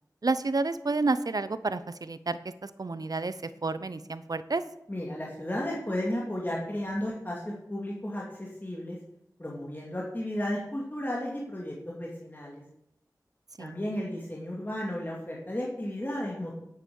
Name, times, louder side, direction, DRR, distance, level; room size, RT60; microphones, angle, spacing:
voice 1, 0.2-4.6 13.6-13.7, right 3 dB, 65° right, 14 dB, 0.7 m, -30 dB
voice 2, 4.9-9.0 9.4-12.6 13.6-16.5, left 1 dB, 30° left, -4 dB, 2.6 m, -34 dB
9.2 x 8.2 x 7.1 m, 0.79 s
wide cardioid pair, 60°, 7 cm